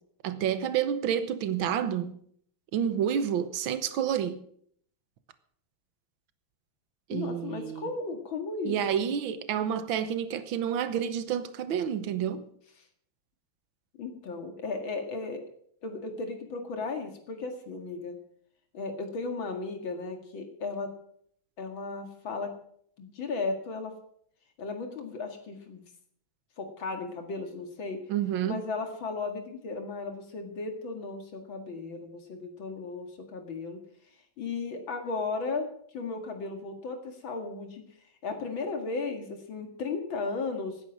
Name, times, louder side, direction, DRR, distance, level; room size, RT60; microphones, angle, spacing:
voice 1, 0.2-2.1 2.7-4.4 7.1-7.9 8.6-12.4 28.1-28.6, right 9 dB, 75° right, 1.8 m, -29 dB
voice 2, 7.1-9.1 14.0-15.4 15.8-18.2 18.7-20.9 21.6-22.5 23.0-23.9 24.6-25.8 26.6-28.0 28.5-33.8 34.4-37.8 38.2-40.8, left 3 dB, 70° left, 2.7 m, -35 dB
17.0 x 9.7 x 6.1 m
omnidirectional pair, 2.3 m